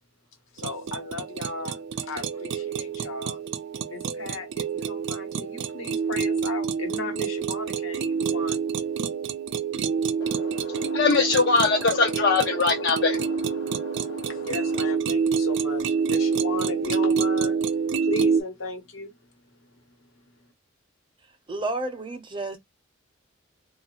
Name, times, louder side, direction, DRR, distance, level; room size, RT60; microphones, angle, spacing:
voice 1, 0.5-3.4 3.9-8.6 14.3-19.2, left 2 dB, 85° left, 1.1 m, -35 dB
sound 1, 0.6-18.4, right 6 dB, 60° right, 0.3 m, -27 dB
voice 2, 10.2-14.5, left 4 dB, 55° left, 0.5 m, -24 dB
voice 3, 21.5-22.6, right 2 dB, 25° right, 0.7 m, -30 dB
2.6 x 2.4 x 2.8 m
head